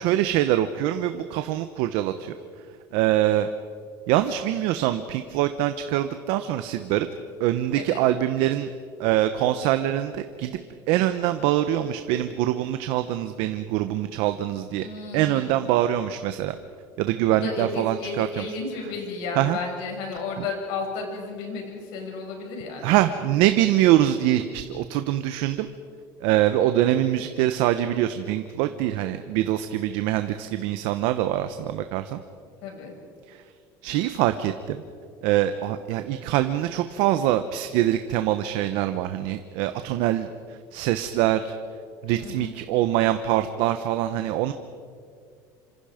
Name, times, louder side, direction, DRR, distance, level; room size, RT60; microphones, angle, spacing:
voice 1, 0.0-2.3 2.9-3.5 4.1-7.1 7.4-8.7 9.0-10.6 10.9-14.8 15.1-16.6 17.0-18.4 19.4-19.6 20.4-20.5 22.8-25.7 26.2-32.2 33.3-33.4 33.8-34.8 35.2-41.5 42.0-44.5, right 13 dB, 75° right, 9 dB, 1.0 m, -24 dB
voice 2, 14.7-15.7 17.3-23.0 32.6-32.9 42.2-42.5, left 4 dB, 70° left, 1 dB, 6.8 m, -33 dB
27.0 x 26.0 x 5.1 m, 2.2 s
cardioid pair, 145°, 9 cm